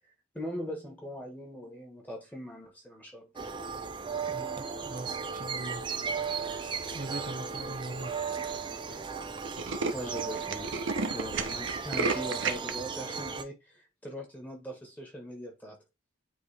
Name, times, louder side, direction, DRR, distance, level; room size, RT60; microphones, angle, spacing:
voice 1, 0.3-3.3 9.9-10.7 11.1-15.8, equal, 10° left, 1.4 m, -40 dB
sound 1, 3.4-13.4, right 5 dB, 25° right, 0.5 m, -36 dB
voice 2, 4.3-5.9 6.9-8.2, right 2 dB, 40° right, 1.1 m, -40 dB
Tools, 6.6-7.1 7.7-7.8 8.0-8.1 8.3-8.5 8.8-9.0 9.2-12.7, right 4 dB, 65° right, 0.8 m, -33 dB
9.4 x 3.2 x 3.4 m
head